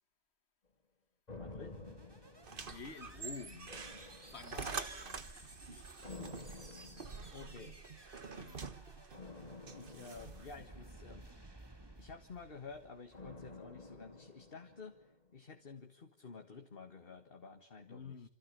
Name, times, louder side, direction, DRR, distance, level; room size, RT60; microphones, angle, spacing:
sound 1, 1.3-3.2 3.7-4.9 6.0-7.7 9.1-11.5 13.1-15.3 15.6-15.7, left 3 dB, 40° left, 3.1 m, -52 dB
voice 1, 1.4-1.8 4.5-4.8 7.3-7.8 9.7-11.3 12.0-18.3, left 4 dB, 60° left, 1.9 m, -51 dB
sound 2, 1.4-13.7, right 1 dB, 20° right, 2.1 m, -57 dB
sound 3, 2.4-10.6, right 5 dB, 55° right, 1.5 m, -47 dB
voice 2, 2.5-3.9 4.3-5.8 6.7-7.0 8.3-8.8 17.9-18.3, left 5 dB, 80° left, 1.8 m, -51 dB
27.5 x 27.0 x 6.9 m
omnidirectional pair, 1.1 m